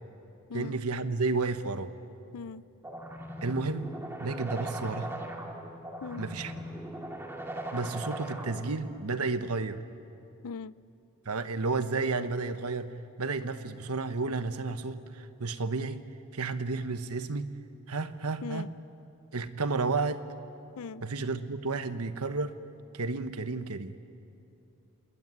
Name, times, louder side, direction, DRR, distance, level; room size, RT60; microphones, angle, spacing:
voice 1, 0.5-1.9 3.4-3.9 4.2-5.1 6.2-6.6 7.7-9.8 11.2-12.9 13.2-16.0 16.3-17.5 17.9-18.7 19.3-20.2 21.0-22.5 22.9-24.0, right 3 dB, 85° right, 10 dB, 1.2 m, -32 dB
voice 2, 2.3-2.6 6.0-6.3 10.4-10.8 18.4-18.7 20.8-21.0, left 5 dB, 80° left, 19 dB, 0.5 m, -39 dB
sound 1, 2.8-8.8, right 1 dB, 10° right, 2.2 m, -39 dB
27.5 x 19.5 x 9.7 m, 2.7 s
head